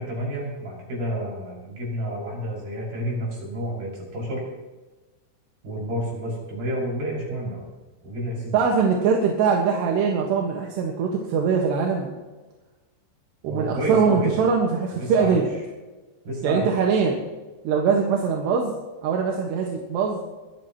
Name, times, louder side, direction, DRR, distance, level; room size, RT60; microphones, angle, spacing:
voice 1, 0.0-4.5 5.6-7.7 8.0-8.6 13.5-14.4 14.9-15.4 16.2-16.8, equal, 45° right, -3 dB, 7.8 m, -30 dB
voice 2, 8.5-12.1 13.4-15.5 16.4-17.2 17.6-18.7 19.0-20.3, right 5 dB, 65° right, 0 dB, 3.3 m, -22 dB
23.0 x 15.5 x 3.1 m, 1.2 s
omnidirectional pair, 6.0 m